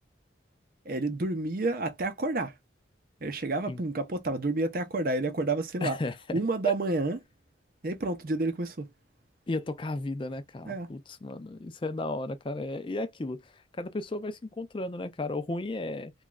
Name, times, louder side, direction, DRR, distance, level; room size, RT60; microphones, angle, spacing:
voice 1, 0.9-2.5 3.2-6.0 6.3-7.2 7.8-8.9 10.6-10.9, right 2 dB, 50° right, 0.6 m, -29 dB
voice 2, 5.8-6.4 6.6-6.7 9.5-16.1, left 2 dB, 25° left, 0.4 m, -34 dB
3.0 x 2.3 x 2.2 m
head